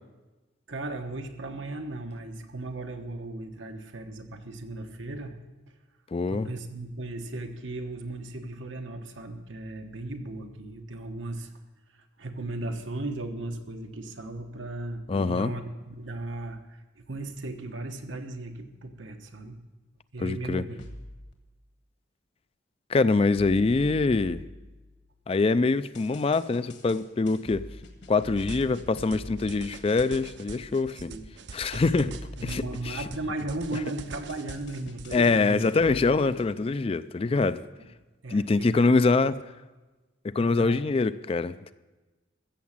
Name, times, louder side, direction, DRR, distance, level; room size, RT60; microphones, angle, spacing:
voice 1, 0.7-5.4 6.3-11.5 11.9-19.6 20.1-20.8 31.0-31.3 32.0-32.1 32.4-35.6 37.7-37.9 38.2-39.3 40.4-40.8, right 2 dB, 90° right, 5 dB, 1.2 m, -36 dB
voice 2, 6.1-6.5 15.1-15.5 20.2-20.6 22.9-24.4 25.3-27.7 28.1-31.1 31.5-32.1 32.4-33.0 35.1-37.6 38.3-39.4 40.2-41.7, left 3 dB, 30° left, 15 dB, 0.3 m, -24 dB
sound 1, 20.8-21.3 23.4-25.2 25.9-29.7 31.7-33.6 34.3-36.5, left 1 dB, 60° left, 1.6 m, -44 dB
sound 2, 28.4-35.2, right 4 dB, 65° right, 0.6 m, -44 dB
14.5 x 7.3 x 7.3 m, 1.2 s
head